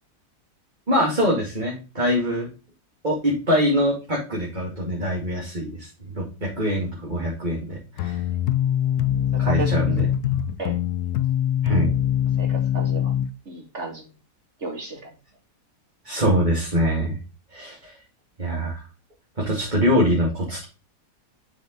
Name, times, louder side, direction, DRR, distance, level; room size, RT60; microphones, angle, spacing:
voice 1, 0.9-2.5 3.0-8.2 9.4-10.1 11.6-11.9 16.0-17.2 17.5-17.9 18.4-18.8 19.4-20.6, equal, 30° right, -3 dB, 2.4 m, -24 dB
sound 1, 8.0-13.3, left 11 dB, 75° left, 1.1 m, -23 dB
voice 2, 12.4-13.1 13.5-14.1 14.6-15.1, right 3 dB, 45° right, 2 dB, 2.6 m, -32 dB
7.6 x 5.3 x 3.9 m, 0.31 s
omnidirectional pair, 1.7 m